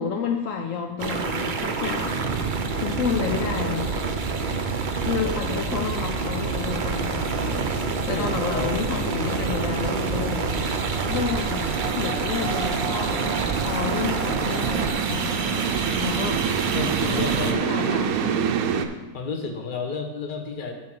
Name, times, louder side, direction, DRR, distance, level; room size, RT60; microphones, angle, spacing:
voice 1, 0.0-2.3 2.7-3.9 5.0-10.4 11.1-15.3 15.9-16.5 17.1-18.3, left 7 dB, 70° left, 4 dB, 0.9 m, -30 dB
sound 1, 1.0-17.5, right 4 dB, 50° right, 0.6 m, -27 dB
sound 2, 1.4-18.9, right 7 dB, 80° right, 1.1 m, -30 dB
voice 2, 8.1-8.7 16.7-18.0 19.1-20.8, left 4 dB, 40° left, 4 dB, 1.0 m, -31 dB
8.4 x 4.7 x 5.9 m, 1.2 s
omnidirectional pair, 1.5 m